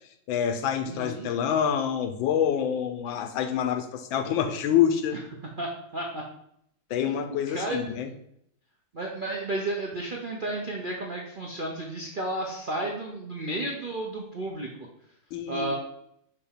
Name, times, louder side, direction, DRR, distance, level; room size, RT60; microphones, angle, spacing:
voice 1, 0.3-5.2 6.9-8.1 15.3-15.7, left 9 dB, 80° left, 8 dB, 1.4 m, -26 dB
voice 2, 0.8-1.3 5.1-5.2 5.6-6.2 7.5-7.8 8.9-14.9 15.5-15.7, right 1 dB, 60° right, -1 dB, 0.5 m, -32 dB
6.6 x 2.7 x 5.7 m, 0.72 s
omnidirectional pair, 2.1 m